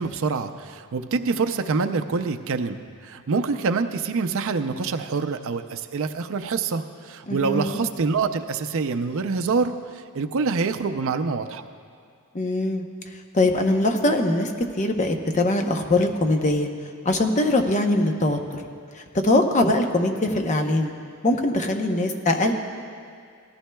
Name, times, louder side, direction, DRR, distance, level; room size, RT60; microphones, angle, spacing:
voice 1, 0.0-2.8 3.0-9.7 10.1-11.6, right 4 dB, 65° right, 7 dB, 0.5 m, -25 dB
voice 2, 7.3-7.8 12.3-12.8 13.3-16.7 17.0-18.6 19.0-20.9 21.2-22.5, left 2 dB, 35° left, 4 dB, 0.8 m, -22 dB
18.0 x 14.5 x 2.3 m, 2.2 s
head